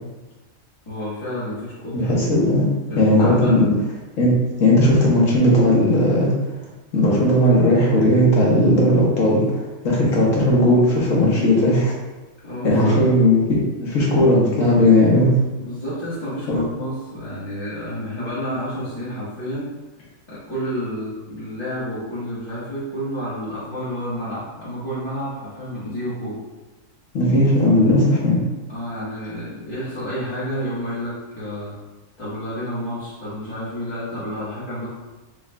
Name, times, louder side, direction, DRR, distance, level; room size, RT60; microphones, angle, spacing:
voice 1, 0.9-2.3 2.8-3.6 12.4-13.0 15.6-19.7 20.3-26.4 28.7-31.8 32.2-34.9, equal, 25° left, -14 dB, 1.2 m, -30 dB
voice 2, 1.9-2.7 3.0-3.7 4.2-6.5 6.9-11.9 12.6-13.4 13.8-15.3 16.5-16.6 27.1-28.4, left 1 dB, 70° left, -4 dB, 1.5 m, -17 dB
5.2 x 2.5 x 3.3 m, 1.1 s
omnidirectional pair, 1.4 m